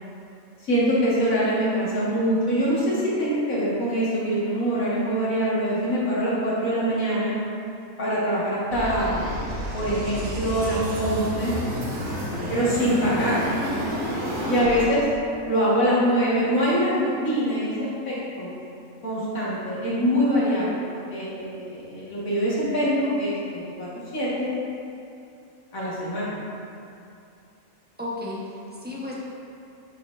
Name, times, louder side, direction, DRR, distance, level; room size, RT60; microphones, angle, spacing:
voice 1, 0.6-7.4 8.0-9.2 9.7-11.5 12.5-13.4 14.5-15.1 15.5-18.5 19.0-20.8 21.1-24.5 25.7-26.4, equal, 75° left, -8 dB, 2.1 m, -24 dB
sound 1, 8.7-14.8, equal, 70° right, 1.5 m, -30 dB
voice 2, 28.0-29.1, left 2 dB, 10° right, -7 dB, 0.8 m, -33 dB
9.7 x 4.3 x 2.6 m, 2.7 s
omnidirectional pair, 1.4 m